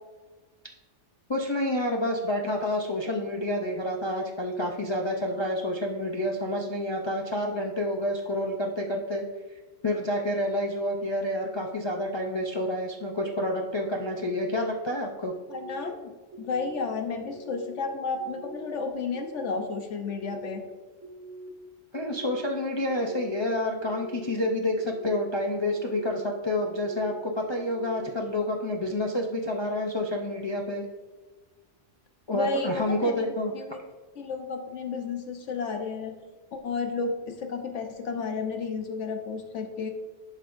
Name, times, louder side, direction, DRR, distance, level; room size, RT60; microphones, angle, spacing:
voice 1, 1.3-9.2 9.8-15.3 21.9-30.8 32.3-33.5, left 1 dB, 35° left, 0 dB, 0.5 m, -29 dB
sound 1, 15.4-15.9 16.3-16.8 17.3-17.7 18.2-18.7 19.1-19.6 20.1-20.6 21.0-21.5 21.9-22.4 22.9-23.4 23.8-24.3 24.8-25.2 25.7-26.2 26.6-27.1 27.6-28.1, right 2 dB, 75° right, 1.4 m, -44 dB
voice 2, 15.5-16.1 16.4-20.6 32.3-33.3 33.5-33.8 34.1-36.1 36.5-39.9, left 4 dB, 70° left, 4 dB, 1.2 m, -32 dB
11.5 x 5.3 x 2.6 m, 1.3 s
omnidirectional pair, 1.3 m